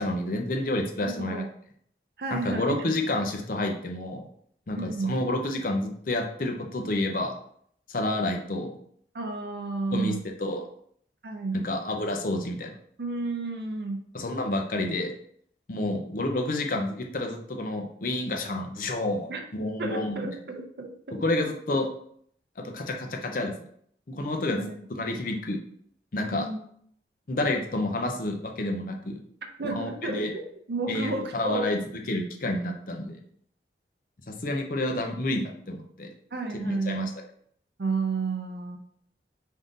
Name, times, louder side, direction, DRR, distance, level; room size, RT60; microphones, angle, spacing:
voice 1, 0.0-1.4 2.3-4.3 4.7-7.3 7.9-8.7 9.9-10.1 10.4-10.6 11.6-12.8 14.1-15.1 15.7-20.2 21.2-21.9 22.6-23.5 24.1-25.6 26.1-26.5 27.3-29.2 29.7-30.3 30.9-33.2 34.3-36.1 36.6-37.1, left 2 dB, 50° left, 3 dB, 0.6 m, -29 dB
voice 2, 1.0-1.5 2.2-2.9 4.7-5.1 9.1-10.2 11.2-11.6 13.0-14.0 19.3-19.4 19.8-21.2 24.6-24.8 26.3-26.6 29.6-31.7 36.3-37.1 37.8-38.8, right 3 dB, 65° right, 4 dB, 0.6 m, -32 dB
3.6 x 2.7 x 3.8 m, 0.64 s
head